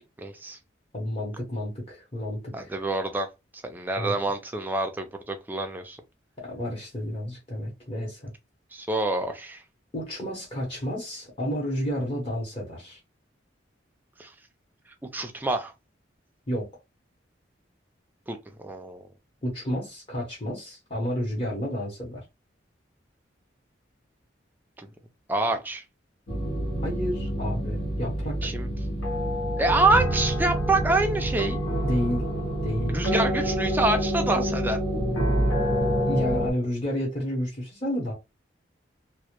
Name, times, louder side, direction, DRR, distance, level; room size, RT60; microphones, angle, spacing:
voice 1, 0.2-0.6 2.5-3.3 3.6-6.0 8.7-9.6 14.2-14.3 15.1-15.7 18.3-19.0 24.8-24.9 25.3-25.8 28.4-28.7 29.6-31.6 32.9-34.8, right 2 dB, 10° right, 0.3 m, -26 dB
voice 2, 0.9-2.7 4.0-4.1 6.4-8.3 9.9-13.0 16.5-16.7 19.4-22.2 25.5-25.6 26.8-28.4 31.8-32.3 32.6-33.0 36.1-38.1, equal, 30° left, 0.7 m, -30 dB
sound 1, 26.3-36.5, equal, 90° left, 0.8 m, -27 dB
2.1 x 2.0 x 2.8 m
head